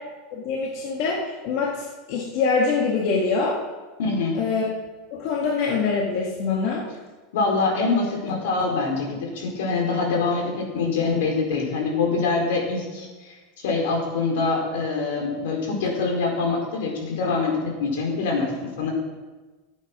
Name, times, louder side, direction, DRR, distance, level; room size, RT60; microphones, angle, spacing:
voice 1, 0.3-3.6 4.3-4.6 5.1-6.8, left 4 dB, 50° left, -2 dB, 1.9 m, -24 dB
voice 2, 4.0-4.4 7.3-13.3 13.6-18.9, left 4 dB, 80° left, 1 dB, 4.3 m, -24 dB
14.5 x 8.7 x 6.0 m, 1.2 s
supercardioid pair, 170°, 0 cm